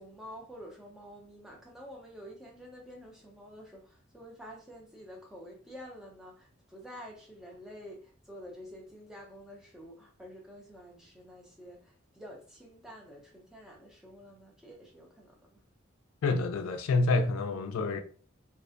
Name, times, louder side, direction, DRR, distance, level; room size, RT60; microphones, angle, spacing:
voice 1, 0.0-15.6, equal, 5° right, 0.5 m, -49 dB
voice 2, 16.2-18.0, left 3 dB, 80° left, 0.3 m, -28 dB
2.4 x 2.0 x 2.5 m
head